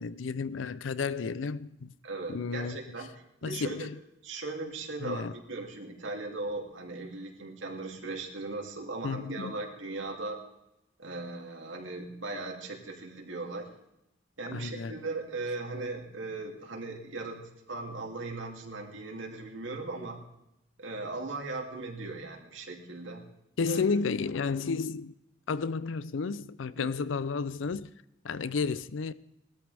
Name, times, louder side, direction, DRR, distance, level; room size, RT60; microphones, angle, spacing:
voice 1, 0.0-1.9 2.3-2.8 3.4-4.0 5.0-5.3 9.0-9.5 14.5-15.0 23.6-25.1 25.5-27.9 28.2-29.1, left 5 dB, 85° left, 0.5 m, -32 dB
voice 2, 2.0-3.1 3.4-3.9 4.2-10.4 11.0-13.7 14.4-20.2 20.8-23.2 23.7-24.1 26.8-26.9, right 3 dB, 85° right, 2.7 m, -38 dB
20.0 x 13.0 x 3.4 m
head